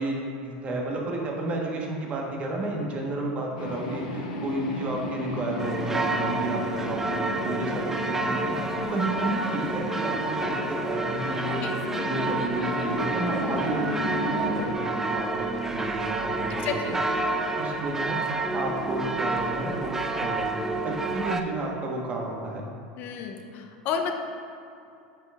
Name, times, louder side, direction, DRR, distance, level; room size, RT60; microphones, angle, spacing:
voice 1, 0.0-8.5 8.9-11.6 12.0-17.0 17.6-20.5 21.1-22.7, right 2 dB, 35° right, -1 dB, 1.3 m, -32 dB
sound 1, 3.6-14.7, left 2 dB, 85° left, 0.9 m, -34 dB
sound 2, 5.6-21.4, right 2 dB, 10° right, 0.4 m, -29 dB
voice 2, 16.5-17.0 17.3-17.6 23.0-24.1, left 6 dB, 50° left, 4 dB, 0.8 m, -33 dB
9.7 x 5.7 x 2.5 m, 2.6 s
supercardioid pair, 110°, 4 cm